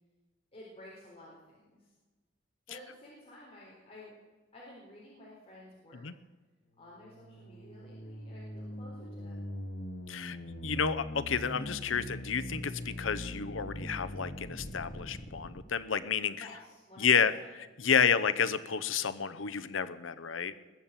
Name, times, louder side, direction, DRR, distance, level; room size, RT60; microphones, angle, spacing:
voice 1, 0.5-1.9 2.7-4.1 4.5-6.0 6.8-9.5 16.4-17.2, left 1 dB, 30° left, -5 dB, 4.0 m, -52 dB
sound 1, 6.8-15.6, equal, 65° left, 1.6 m, -42 dB
voice 2, 10.6-16.5 17.0-17.3 17.8-20.5, left 7 dB, 85° left, 13 dB, 0.8 m, -30 dB
21.0 x 7.3 x 9.0 m, 1.2 s
head